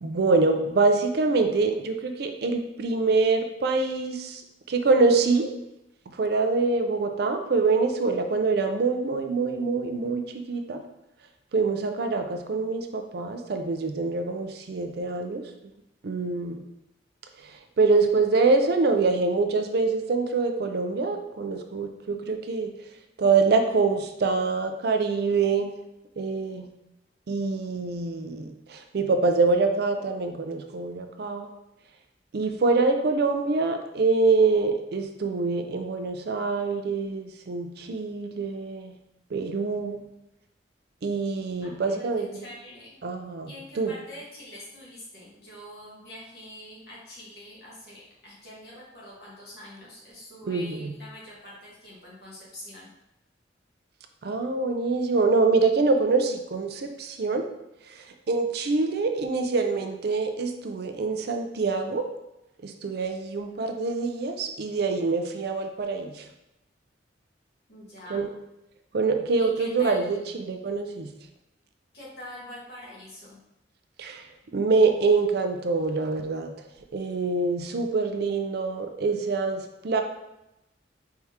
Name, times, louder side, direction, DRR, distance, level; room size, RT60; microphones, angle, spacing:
voice 1, 0.0-4.4 4.7-5.6 6.1-10.2 10.5-10.8 11.5-15.4 16.0-16.6 17.4-17.5 17.8-22.7 23.2-25.8 26.2-26.7 27.3-31.5 32.3-39.0 39.3-40.0 41.0-42.5 43.0-43.9 50.5-50.9 54.2-57.5 57.9-62.1 62.6-66.3 68.1-68.3 68.9-70.2 70.5-71.1 74.0-74.2 74.5-76.5 76.9-80.0, right 3 dB, 60° right, 6 dB, 0.4 m, -25 dB
voice 2, 41.6-42.9 43.4-52.9 67.7-68.3 69.4-70.1 71.9-73.4, left 1 dB, 60° left, -6 dB, 1.6 m, -45 dB
4.5 x 3.5 x 2.8 m, 0.89 s
head